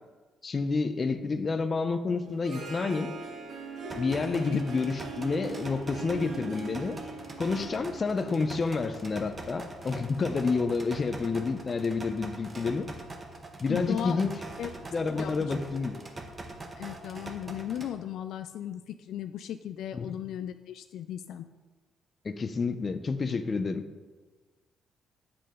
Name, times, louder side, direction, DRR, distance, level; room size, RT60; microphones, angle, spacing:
voice 1, 0.4-3.1 4.0-7.0 7.4-12.9 13.6-14.3 14.9-16.0 19.9-20.2 22.2-23.8, left 4 dB, 35° left, 10 dB, 0.7 m, -29 dB
Harp, 2.2-9.3, right 3 dB, 60° right, 1.4 m, -41 dB
sound 1, 3.9-17.9, right 2 dB, 30° right, 1.2 m, -43 dB
voice 2, 13.7-14.2 14.6-14.7 15.2-15.5 16.8-21.5, left 10 dB, 80° left, 9 dB, 0.3 m, -36 dB
8.5 x 7.8 x 3.8 m, 1.3 s
cardioid pair, 90°, 0 cm